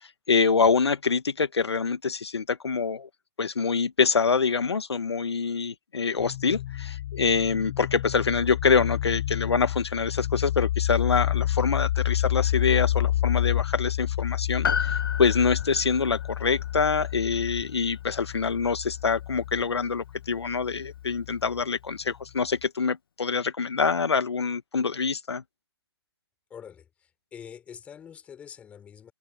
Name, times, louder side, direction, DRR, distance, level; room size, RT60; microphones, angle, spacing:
voice 1, 0.0-3.1 3.4-25.4, left 5 dB, 70° left, 1.4 m, -25 dB
sound 1, 6.2-21.6, left 13 dB, 30° left, 1.0 m, -29 dB
Piano, 14.6-19.2 19.5-19.6, left 6 dB, 55° left, 1.4 m, -34 dB
voice 2, 26.5-29.1, left 8 dB, 10° left, 4.9 m, -45 dB
hypercardioid pair, 155°, 14 cm